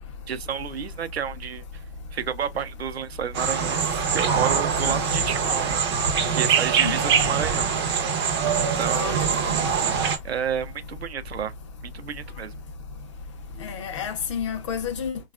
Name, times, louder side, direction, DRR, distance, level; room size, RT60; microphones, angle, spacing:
voice 1, 0.3-1.6 2.1-5.8 6.3-7.7 8.6-9.4 10.2-11.5 11.8-12.5, right 8 dB, 90° right, 0.5 m, -31 dB
sound 1, 3.3-10.2, right 6 dB, 25° right, 0.4 m, -23 dB
voice 2, 6.8-7.2 8.9-9.2 9.4-9.8 13.6-15.2, left 7 dB, 30° left, 0.5 m, -31 dB
3.3 x 2.3 x 2.3 m
hypercardioid pair, 135°, 30 cm